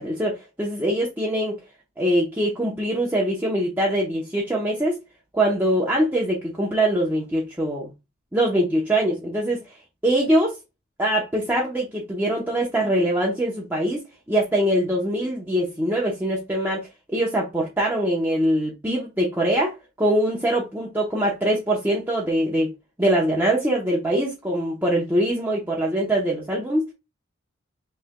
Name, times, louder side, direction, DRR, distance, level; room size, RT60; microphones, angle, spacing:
voice 1, 0.0-1.6 2.0-5.0 5.3-7.9 8.3-9.6 10.0-10.6 11.0-14.0 14.3-22.7 23.0-26.8, right 1 dB, 10° right, 0.8 m, -23 dB
6.1 x 3.3 x 2.2 m
head